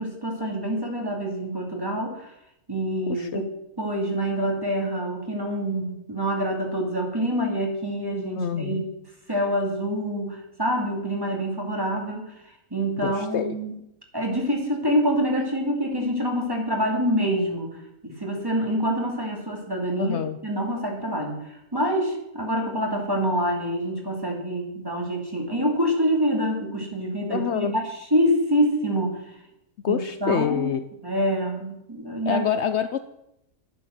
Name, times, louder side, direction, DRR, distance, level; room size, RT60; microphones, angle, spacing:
voice 1, 0.0-2.3 2.7-3.5 3.8-8.9 9.3-12.3 12.7-13.7 14.1-17.7 18.0-21.4 21.7-27.8 28.1-29.2 29.9-30.7 31.0-32.4, equal, 15° right, 0 dB, 2.8 m, -26 dB
voice 2, 3.1-3.4 8.4-8.8 13.0-13.6 20.0-20.4 27.3-27.7 29.8-30.8 32.3-33.0, left 9 dB, 65° left, 10 dB, 0.9 m, -26 dB
11.0 x 10.5 x 6.6 m, 0.83 s
omnidirectional pair, 1.4 m